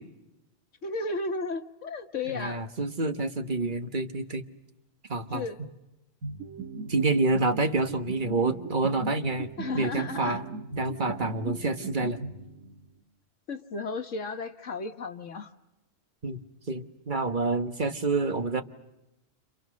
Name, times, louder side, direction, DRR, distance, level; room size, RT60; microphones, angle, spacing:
voice 1, 0.8-2.6 5.3-5.6 9.6-10.4 13.5-15.5, left 3 dB, 70° left, 6 dB, 1.6 m, -34 dB
voice 2, 2.3-4.4 5.1-5.5 6.9-9.5 9.7-10.4 10.8-12.2 16.2-18.6, right 2 dB, 40° right, 8 dB, 1.5 m, -28 dB
sound 1, 6.2-12.9, right 5 dB, 80° right, 2.1 m, -38 dB
30.0 x 27.0 x 6.4 m, 0.94 s
omnidirectional pair, 1.3 m